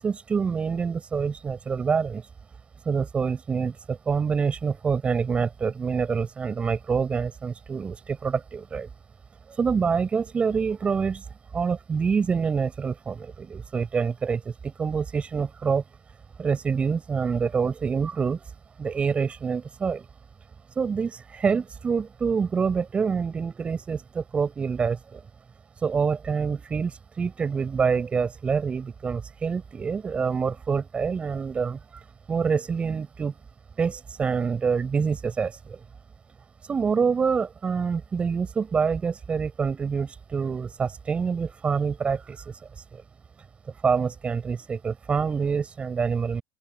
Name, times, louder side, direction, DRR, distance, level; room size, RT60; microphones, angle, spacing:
voice 1, 0.0-2.2 2.9-8.9 9.5-11.2 11.5-15.8 16.4-18.4 18.8-20.0 20.8-25.2 25.8-31.8 32.3-33.3 33.8-35.8 36.7-42.6 42.9-43.0 43.8-46.4, right 5 dB, 25° right, 7.7 m, -26 dB
open air
cardioid pair, 135°, 5 cm